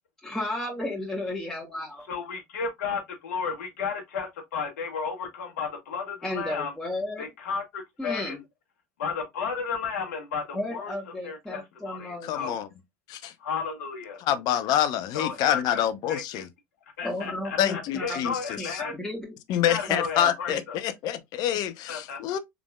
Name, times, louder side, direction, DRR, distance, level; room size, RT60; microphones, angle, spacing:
voice 1, 0.2-2.1 6.2-7.3 8.0-8.4 10.5-12.6 17.0-19.4 19.9-20.6, left 1 dB, 5° left, 1.8 m, -34 dB
voice 2, 2.1-6.7 7.2-8.4 9.0-10.9 11.2-12.5 13.4-14.2 15.1-15.8 16.1-16.4 17.0-18.9 19.6-20.8 21.9-22.4, left 6 dB, 75° left, 1.6 m, -33 dB
voice 3, 12.2-12.7 13.1-13.3 14.2-16.5 17.6-18.8 19.5-22.4, left 11 dB, 55° left, 0.6 m, -27 dB
4.8 x 3.6 x 2.3 m
hypercardioid pair, 75°, 8 cm